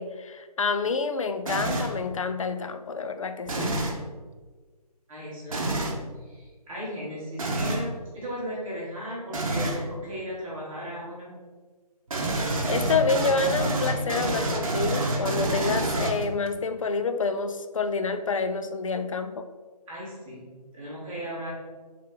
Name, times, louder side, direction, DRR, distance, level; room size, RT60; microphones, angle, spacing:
voice 1, 0.0-3.8 12.7-19.5, left 4 dB, 55° left, 8 dB, 0.4 m, -28 dB
sound 1, 1.5-2.0 3.5-4.0 5.5-6.0 7.4-7.9 9.3-9.8 12.1-16.5, right 2 dB, 55° right, 0.8 m, -27 dB
voice 2, 5.1-11.3 19.9-20.5 20.7-21.5, equal, 10° right, -13 dB, 1.0 m, -36 dB
4.3 x 3.2 x 3.7 m, 1.4 s
figure-of-eight pair, 150°, 21 cm